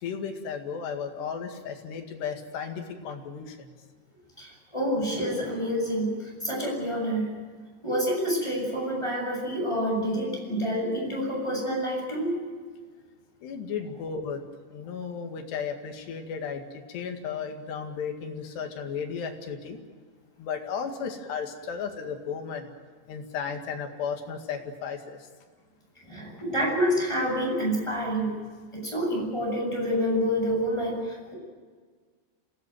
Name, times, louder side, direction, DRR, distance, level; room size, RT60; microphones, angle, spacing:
voice 1, 0.0-3.7 13.4-14.4 14.7-19.8 20.4-22.7 23.1-25.2, left 6 dB, 60° left, 4 dB, 3.9 m, -34 dB
voice 2, 4.4-7.3 7.8-12.3 26.0-28.3 28.7-31.3, equal, 5° left, -1 dB, 7.5 m, -28 dB
26.5 x 17.5 x 9.2 m, 1.6 s
omnidirectional pair, 5.8 m